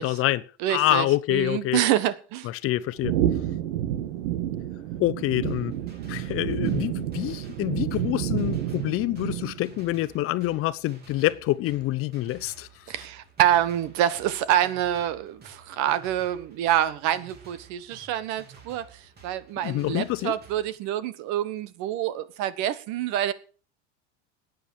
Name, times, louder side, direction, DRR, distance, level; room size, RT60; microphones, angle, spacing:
voice 1, 0.0-0.4 0.7-1.8 2.4-3.1 5.0-5.7 6.1-12.7 19.6-20.3, left 16 dB, 40° left, 0.8 m, -26 dB
voice 2, 0.6-2.5 12.9-18.8 19.2-23.3, right 12 dB, 55° right, 1.4 m, -26 dB
sound 1, 3.0-9.8, right 12 dB, 85° right, 1.6 m, -29 dB
sound 2, 5.4-20.7, right 5 dB, 30° right, 3.4 m, -52 dB
13.0 x 9.3 x 6.5 m
supercardioid pair, 125°, 33 cm